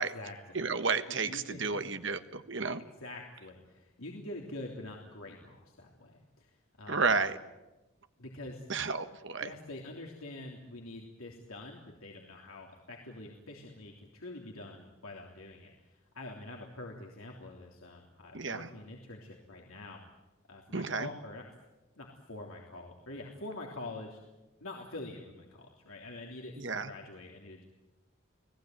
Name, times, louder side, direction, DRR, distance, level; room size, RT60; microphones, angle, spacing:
voice 1, 0.0-0.6 1.1-1.9 2.8-6.5 6.8-7.2 8.2-8.6 9.4-20.0 20.5-21.5 22.0-24.2 24.6-27.6, left 2 dB, 90° left, 0 dB, 3.3 m, -46 dB
voice 2, 0.5-2.8 6.9-7.4 8.7-9.5 18.3-18.7 20.7-21.1 26.6-26.9, right 4 dB, 60° right, 10 dB, 1.5 m, -32 dB
30.0 x 18.5 x 9.3 m, 1.1 s
head